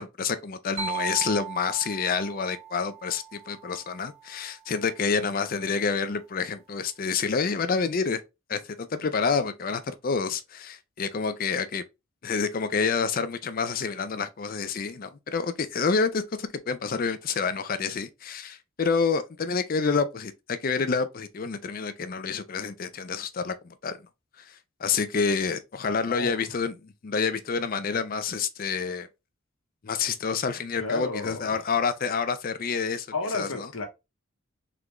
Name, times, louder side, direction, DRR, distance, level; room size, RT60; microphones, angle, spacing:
voice 1, 0.0-8.2 8.5-11.8 12.2-24.0 24.4-29.1 29.8-33.1 33.3-33.7, left 5 dB, 40° left, 0.4 m, -28 dB
sound 1, 0.8-4.5, right 7 dB, 30° right, 0.7 m, -38 dB
voice 2, 26.1-26.4 30.8-31.6 33.1-33.8, left 3 dB, 80° left, 1.0 m, -32 dB
3.7 x 3.3 x 3.0 m
head